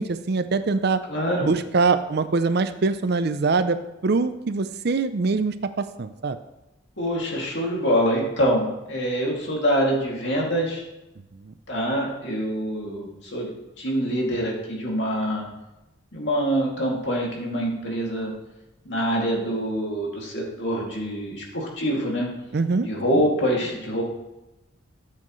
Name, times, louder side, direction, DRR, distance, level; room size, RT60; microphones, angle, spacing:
voice 1, 0.0-1.0 1.4-6.4 11.4-11.5 22.5-22.9 23.1-23.2, right 4 dB, 50° right, 11 dB, 0.5 m, -23 dB
voice 2, 1.1-1.5 7.0-10.8 11.7-13.5 13.8-15.4 16.1-18.3 18.8-22.3 22.9-24.0, equal, 60° left, -2 dB, 2.5 m, -25 dB
13.5 x 7.7 x 3.1 m, 0.98 s
head